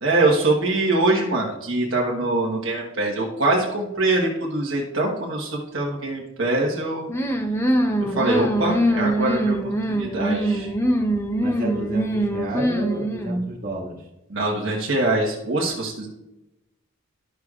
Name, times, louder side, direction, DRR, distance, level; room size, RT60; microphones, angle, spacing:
voice 1, 0.0-7.1 8.0-9.5 9.9-10.7 14.3-16.1, right 2 dB, 65° right, -3 dB, 1.3 m, -23 dB
sound 1, 7.1-13.5, right 1 dB, 10° left, 0.6 m, -23 dB
voice 2, 11.4-14.1, right 1 dB, 40° right, -2 dB, 1.9 m, -31 dB
12.5 x 6.4 x 2.4 m, 0.93 s
head